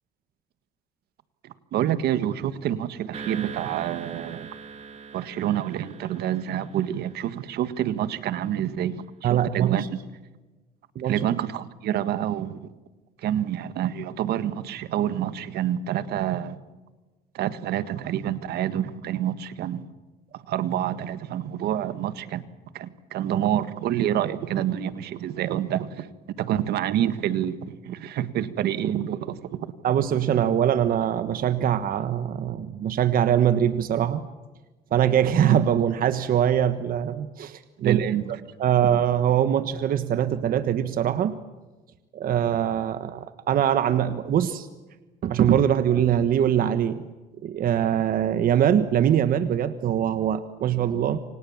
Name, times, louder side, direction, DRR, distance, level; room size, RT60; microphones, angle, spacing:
voice 1, 1.4-4.5 5.1-10.0 11.0-12.7 13.2-16.6 17.3-19.9 20.3-22.4 22.7-26.1 26.4-29.7 37.8-38.2, right 11 dB, 75° right, 13 dB, 1.7 m, -27 dB
sound 1, 3.1-7.6, right 5 dB, 40° right, 2.5 m, -41 dB
voice 2, 9.2-9.9 10.9-11.3 29.8-34.3 34.9-38.0 38.6-41.4 42.1-44.7 45.2-47.0 47.4-51.2, right 9 dB, 60° right, 11 dB, 1.4 m, -22 dB
28.5 x 25.5 x 7.3 m, 1.2 s
cardioid pair, 110°, 17 cm